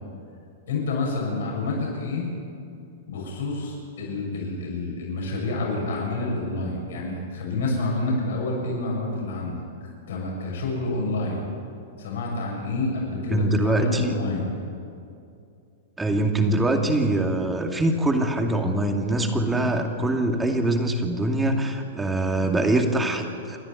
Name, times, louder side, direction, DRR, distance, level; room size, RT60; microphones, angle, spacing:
voice 1, 0.7-2.3 3.1-9.6 10.1-11.5 12.0-14.5, left 2 dB, 75° left, -2 dB, 6.9 m, -28 dB
voice 2, 13.3-14.1 16.0-23.6, right 1 dB, 10° right, 3 dB, 2.4 m, -23 dB
28.5 x 11.0 x 9.3 m, 2.5 s
hypercardioid pair, 115°, 0 cm